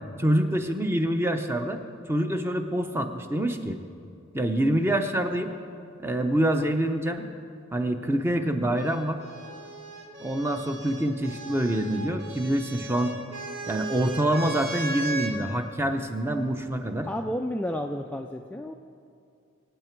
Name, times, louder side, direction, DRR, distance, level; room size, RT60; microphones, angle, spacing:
voice 1, 0.2-1.8 2.1-3.8 4.3-5.5 6.0-7.3 7.7-9.2 10.2-13.1 13.7-17.1, right 1 dB, 10° right, 6 dB, 0.7 m, -26 dB
sound 1, 8.8-15.4 16.5-17.1, right 3 dB, 60° right, 1.7 m, -37 dB
voice 2, 17.0-18.7, equal, 5° left, 3 dB, 0.3 m, -31 dB
23.0 x 9.0 x 4.6 m, 2.5 s
head